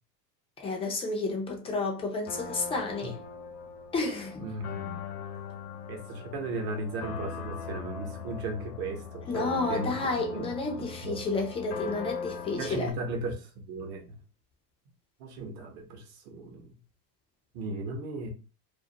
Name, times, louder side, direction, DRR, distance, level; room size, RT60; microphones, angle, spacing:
voice 1, 0.6-3.2 3.9-4.5 9.3-12.9, left 3 dB, 15° left, 0.3 m, -31 dB
sound 1, 2.3-12.9, left 6 dB, 70° left, 0.6 m, -40 dB
voice 2, 4.4-5.0 5.9-11.2 12.6-14.1 15.2-16.7 17.5-18.3, right 2 dB, 45° right, 0.9 m, -36 dB
2.5 x 2.0 x 2.7 m
supercardioid pair, 105°, 50 cm